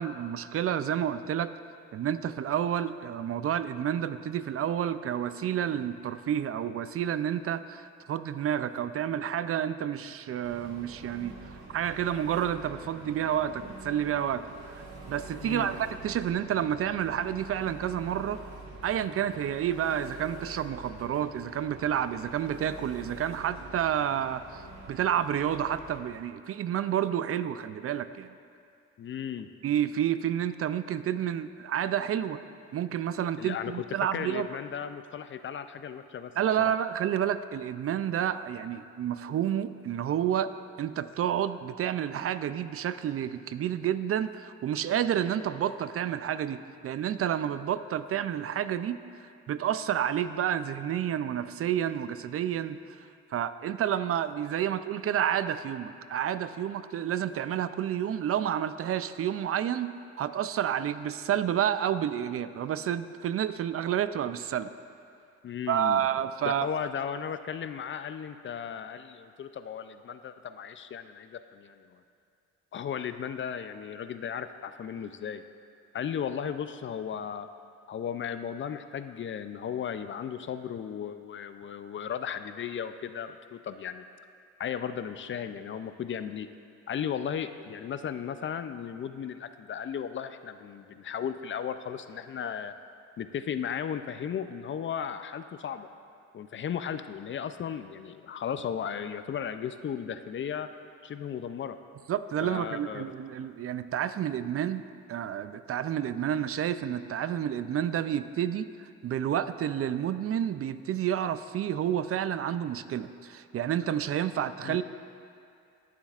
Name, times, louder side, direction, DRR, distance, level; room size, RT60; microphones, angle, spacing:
voice 1, 0.0-1.5 1.9-14.4 15.1-18.4 18.8-28.3 29.6-32.4 32.7-34.5 36.4-40.5 40.8-49.0 49.5-53.1 53.3-59.9 60.2-64.7 65.7-66.7 102.1-114.8, right 10 dB, 50° right, 12 dB, 0.4 m, -30 dB
Engine, 10.4-26.0, right 2 dB, 65° right, 2.1 m, -46 dB
voice 2, 29.0-29.5 33.4-36.3 36.6-36.7 65.4-66.1 66.4-72.0 72.7-75.4 75.9-77.5 77.9-84.1 84.6-86.5 86.9-92.7 93.2-95.9 96.3-100.7 101.0-101.8 102.4-103.0 114.6-114.8, left 8 dB, 40° left, 10 dB, 0.4 m, -35 dB
22.0 x 7.3 x 2.4 m, 2.4 s
cardioid pair, 90°, 30 cm